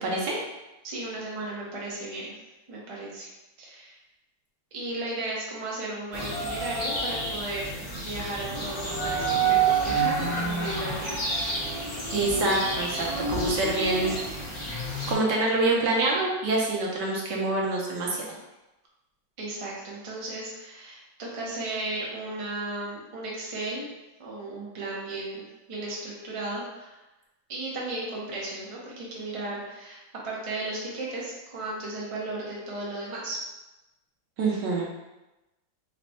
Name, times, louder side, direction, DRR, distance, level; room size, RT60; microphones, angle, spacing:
voice 1, 0.0-0.4 12.1-14.1 15.1-18.2 34.4-34.9, right 2 dB, 70° right, -2 dB, 1.3 m, -26 dB
voice 2, 0.8-2.3 2.7-3.3 3.6-4.0 4.7-7.7 7.9-11.3 19.4-23.9 24.2-25.4 25.7-27.0 27.5-33.4, right 2 dB, 55° right, -5 dB, 0.3 m, -35 dB
sound 1, 6.1-15.1, right 3 dB, 45° left, 0.5 m, -28 dB
4.1 x 2.2 x 4.2 m, 1.0 s
omnidirectional pair, 2.1 m